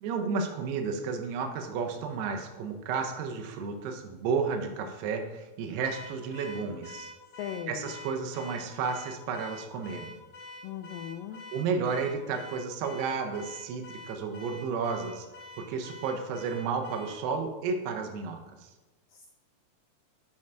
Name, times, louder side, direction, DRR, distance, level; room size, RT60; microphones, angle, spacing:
voice 1, 0.0-7.1 7.7-10.1 11.5-15.3 15.6-18.7, right 5 dB, 90° right, 5 dB, 2.9 m, -32 dB
Car / Alarm, 5.8-17.2, left 2 dB, 40° left, 2.4 m, -47 dB
voice 2, 7.4-7.9 10.6-11.5 19.1-19.3, left 10 dB, 85° left, 6 dB, 1.9 m, -38 dB
7.4 x 6.2 x 4.4 m, 1.1 s
omnidirectional pair, 4.5 m